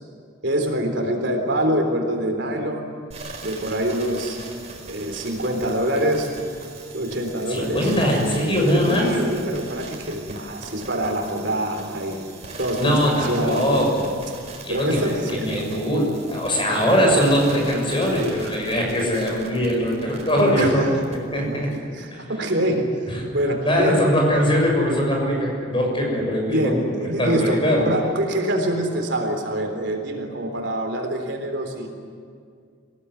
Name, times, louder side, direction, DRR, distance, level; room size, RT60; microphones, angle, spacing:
voice 1, 0.4-3.0 3.4-4.4 4.8-6.3 6.9-7.9 8.9-12.2 12.6-13.9 14.7-15.6 20.6-21.0 21.4-22.9 23.3-24.0 24.3-24.4 26.5-31.9, right 1 dB, 60° right, 3 dB, 3.7 m, -25 dB
sound 1, 3.1-20.6 21.0-21.2, right 3 dB, 35° right, 4.8 m, -40 dB
voice 2, 7.5-9.1 12.8-14.1 14.6-21.7 22.1-22.2 23.1-23.2 23.6-27.9, equal, 25° left, 0 dB, 7.0 m, -21 dB
26.5 x 18.0 x 9.8 m, 2.2 s
head